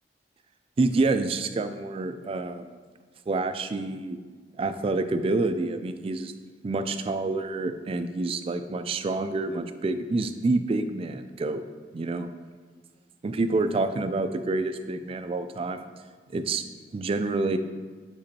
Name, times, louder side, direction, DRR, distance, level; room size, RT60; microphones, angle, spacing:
voice 1, 0.8-2.7 3.3-4.2 4.6-6.3 6.6-11.6 11.9-12.3 13.2-15.9 16.3-16.6 16.9-17.6, right 3 dB, 35° right, 10 dB, 0.3 m, -27 dB
6.9 x 5.1 x 2.8 m, 1.5 s
head